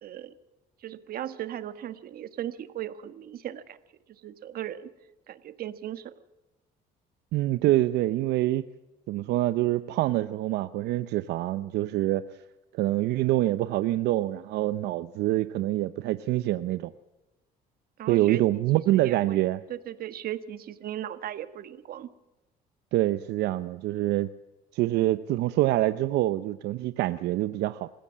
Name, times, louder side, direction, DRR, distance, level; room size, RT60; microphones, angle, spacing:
voice 1, 0.0-0.3 0.8-3.8 4.1-4.9 5.3-6.1 18.0-18.6 18.9-19.4 19.7-22.1, right 11 dB, 60° right, 12 dB, 1.5 m, -37 dB
voice 2, 7.3-8.6 9.1-12.2 12.7-16.9 18.1-19.6 22.9-24.3 24.7-27.9, right 15 dB, 80° right, 13 dB, 0.7 m, -25 dB
27.5 x 15.5 x 7.5 m, 1.0 s
cardioid pair, 110°, 17 cm